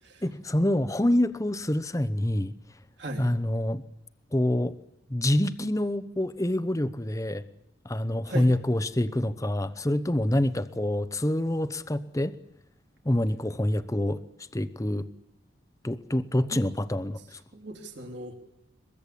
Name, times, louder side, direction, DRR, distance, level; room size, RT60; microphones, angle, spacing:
voice 1, 0.2-2.5 3.2-3.8 4.3-4.7 5.1-7.4 7.8-12.3 13.0-14.2 14.5-15.1 15.8-17.4, left 1 dB, 15° left, 0.8 m, -26 dB
voice 2, 3.0-3.3 8.3-8.5 16.5-16.6 17.5-18.3, right 1 dB, 60° right, 3.3 m, -38 dB
22.5 x 22.0 x 8.5 m
head